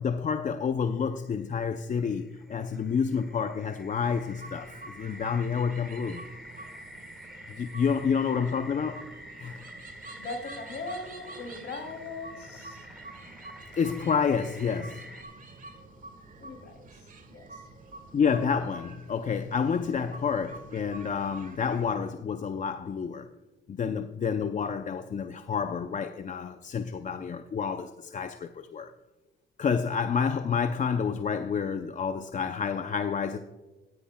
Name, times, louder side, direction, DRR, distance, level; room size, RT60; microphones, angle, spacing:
voice 1, 0.0-6.3 7.5-9.0 9.4-9.6 13.7-15.0 18.1-23.3 23.7-28.9 29.6-33.4, left 6 dB, 40° left, 0.5 m, -29 dB
sound 1, 1.2-15.2, equal, ahead, 1.8 m, -48 dB
sound 2, 4.0-21.9, right 2 dB, 40° right, 1.6 m, -48 dB
voice 2, 10.1-12.9 16.4-17.7, left 3 dB, 60° left, 2.8 m, -40 dB
16.0 x 10.0 x 2.2 m
cardioid pair, 90°, 20 cm